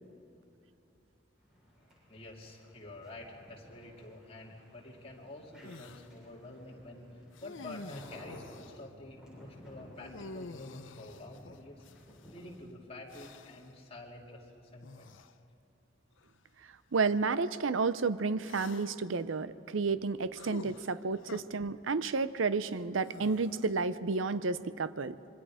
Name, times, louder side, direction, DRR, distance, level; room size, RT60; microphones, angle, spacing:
sound 1, 1.4-12.4, equal, 5° right, 7.1 m, -56 dB
voice 1, 2.1-11.8 12.3-15.1, left 2 dB, 30° left, -2 dB, 2.9 m, -48 dB
sound 2, 5.6-6.1 7.3-8.9 10.0-12.3 13.1-13.7 14.8-15.3 16.2-16.3 18.4-19.1 20.4-21.4 23.0-23.8, left 3 dB, 75° left, 0.7 m, -49 dB
voice 2, 16.9-25.2, right 4 dB, 85° right, 15 dB, 0.6 m, -31 dB
26.0 x 23.5 x 5.0 m, 2.7 s
head